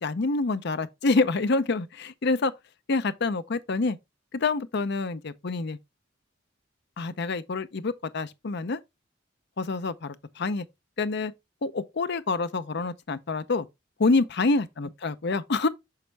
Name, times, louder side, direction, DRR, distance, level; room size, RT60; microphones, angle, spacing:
voice 1, 0.0-2.5 2.9-4.0 4.3-5.8 7.0-8.8 9.6-10.6 11.0-11.3 11.6-13.7 14.0-15.7, left 3 dB, 60° left, 0.6 m, -27 dB
6.3 x 5.6 x 3.3 m
head